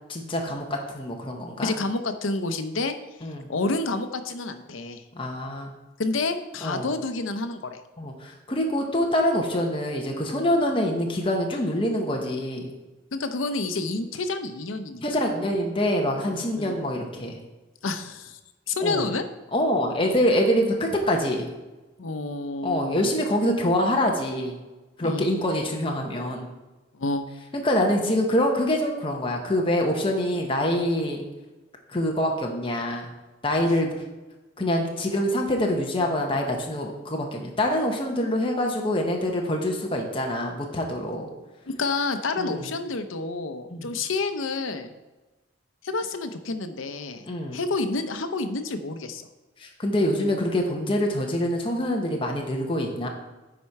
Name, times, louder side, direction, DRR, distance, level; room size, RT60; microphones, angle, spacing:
voice 1, 0.1-1.7 3.2-3.5 5.1-5.7 6.6-6.9 8.0-12.7 15.0-17.4 18.8-19.0 19.5-21.5 22.6-24.6 25.0-26.5 27.6-31.2 31.9-33.1 33.4-33.9 34.6-41.3 42.4-42.7 43.7-43.9 47.2-47.6 49.6-53.1, left 1 dB, 25° left, 1 dB, 1.0 m, -25 dB
voice 2, 1.6-2.9 3.5-5.0 6.0-7.8 13.1-15.0 16.6-16.8 17.8-18.4 18.7-19.2 22.0-23.1 25.0-25.3 26.9-27.3 41.7-44.9 45.8-47.2 47.5-49.3, left 3 dB, 85° left, 8 dB, 0.7 m, -29 dB
10.0 x 4.3 x 4.6 m, 1.1 s
head